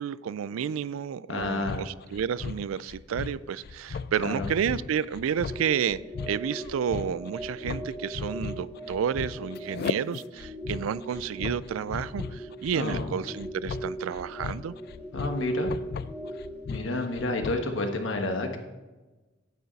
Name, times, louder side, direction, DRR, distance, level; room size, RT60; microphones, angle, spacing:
voice 1, 0.0-14.8, right 8 dB, 90° right, 19 dB, 0.3 m, -31 dB
voice 2, 1.3-1.8 4.2-4.5 12.7-13.1 15.1-15.7 16.7-18.6, left 2 dB, 70° left, 4 dB, 1.3 m, -30 dB
sound 1, 1.4-17.8, left 5 dB, 50° left, 0.3 m, -37 dB
sound 2, 5.5-17.3, right 1 dB, 5° left, 0.8 m, -39 dB
9.4 x 9.2 x 4.0 m, 1.2 s
head